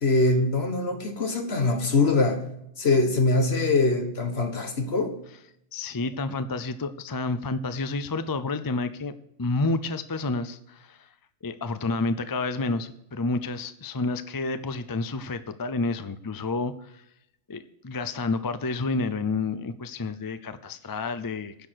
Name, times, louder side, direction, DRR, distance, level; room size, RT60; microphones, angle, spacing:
voice 1, 0.0-2.5 2.8-5.2, left 3 dB, 55° left, 1.8 m, -23 dB
voice 2, 5.7-11.1 11.4-17.0 17.5-21.7, left 3 dB, 35° left, 0.3 m, -30 dB
10.0 x 6.5 x 7.8 m
omnidirectional pair, 1.3 m